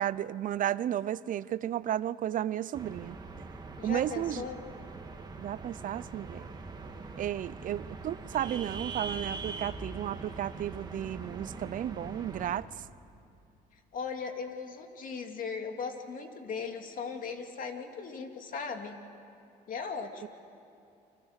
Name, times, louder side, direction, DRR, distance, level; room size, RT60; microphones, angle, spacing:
voice 1, 0.0-3.2 3.8-4.5 5.4-6.5 7.2-12.8 20.2-20.3, right 11 dB, 50° right, 18 dB, 0.6 m, -33 dB
sound 1, 2.7-12.6, right 3 dB, 25° right, 2.2 m, -42 dB
voice 2, 3.8-4.6 13.9-19.0 19.7-20.3, left 5 dB, 55° left, 4 dB, 2.6 m, -38 dB
29.5 x 25.0 x 6.6 m, 2.7 s
cardioid pair, 110°, 17 cm